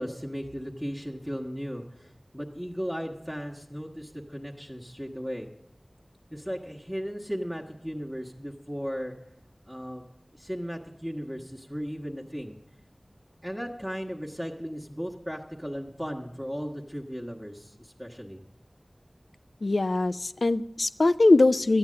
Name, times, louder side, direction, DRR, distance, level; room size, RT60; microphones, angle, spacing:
voice 1, 0.0-5.5 6.3-9.2 9.6-10.1 10.3-12.6 13.4-18.4, equal, 5° right, 0 dB, 1.3 m, -36 dB
voice 2, 19.6-21.8, left 2 dB, 85° left, 14 dB, 0.4 m, -22 dB
12.5 x 8.9 x 8.5 m, 0.78 s
wide cardioid pair, 45°, 0 cm